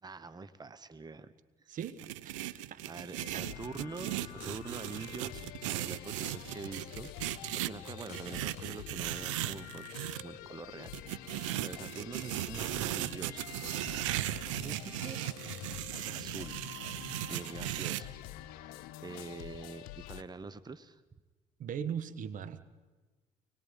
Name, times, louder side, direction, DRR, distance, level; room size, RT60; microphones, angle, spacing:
voice 1, 0.0-1.3 1.6-1.8 2.8-5.4 5.7-13.6 14.5-15.2 15.9-16.6 17.3-18.2 18.4-21.0, right 4 dB, 25° right, 14 dB, 1.1 m, -45 dB
voice 2, 1.7-2.8 3.3-3.4 21.6-22.6, right 8 dB, 60° right, 12 dB, 1.4 m, -39 dB
sound 1, 1.8-10.2 10.9-18.0, right 16 dB, 90° right, 0.7 m, -37 dB
sound 2, 3.2-20.2, left 14 dB, 75° left, 0.8 m, -47 dB
24.5 x 21.0 x 5.4 m, 1.2 s
hypercardioid pair, 60°, 16 cm